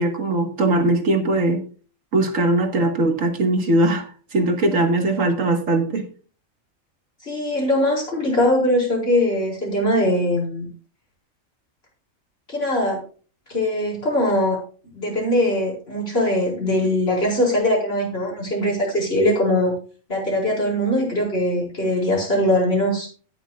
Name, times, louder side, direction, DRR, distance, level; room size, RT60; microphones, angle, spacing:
voice 1, 0.0-1.6 2.1-4.0 4.3-6.1, right 2 dB, 70° right, 5 dB, 2.1 m, -20 dB
voice 2, 7.2-10.7 12.5-13.0 13.5-14.6 14.9-19.7 20.1-23.1, left 1 dB, 45° left, -2 dB, 5.1 m, -21 dB
17.5 x 7.4 x 2.4 m, 0.39 s
omnidirectional pair, 1.4 m